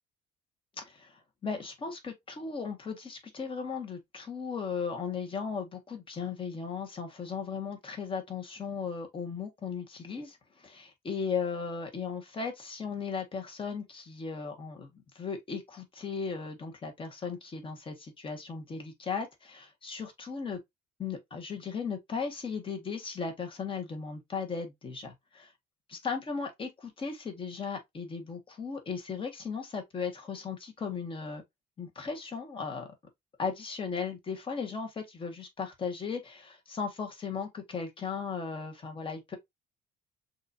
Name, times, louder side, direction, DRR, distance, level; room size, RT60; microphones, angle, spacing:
voice 1, 0.8-10.4 10.6-20.6 21.0-25.1 26.0-31.4 31.8-32.9 33.4-39.4, left 5 dB, 30° left, 1.7 m, -36 dB
6.2 x 2.7 x 2.8 m
cardioid pair, 110°, 17 cm